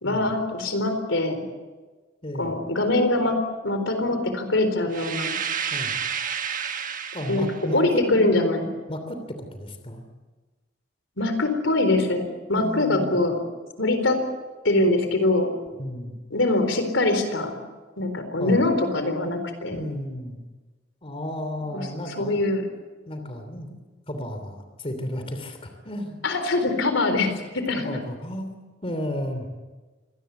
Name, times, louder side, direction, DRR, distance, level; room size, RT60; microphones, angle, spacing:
voice 1, 0.0-1.4 2.4-5.3 7.3-7.5 7.7-8.7 11.2-13.4 13.8-14.2 14.6-15.5 16.3-17.6 18.0-19.8 21.7-21.8 22.2-22.7 26.2-28.0, left 2 dB, 75° left, 8 dB, 4.1 m, -23 dB
voice 2, 2.2-2.5 5.7-5.9 7.1-8.3 8.9-10.1 12.5-13.2 15.7-16.1 18.4-18.6 19.7-20.4 21.0-22.4 23.0-23.8 24.1-26.2 27.7-28.5 28.8-29.5, equal, 30° left, 6 dB, 3.1 m, -33 dB
sound 1, 4.9-7.7, right 7 dB, 45° right, 1.4 m, -30 dB
25.5 x 19.0 x 8.3 m, 1.3 s
head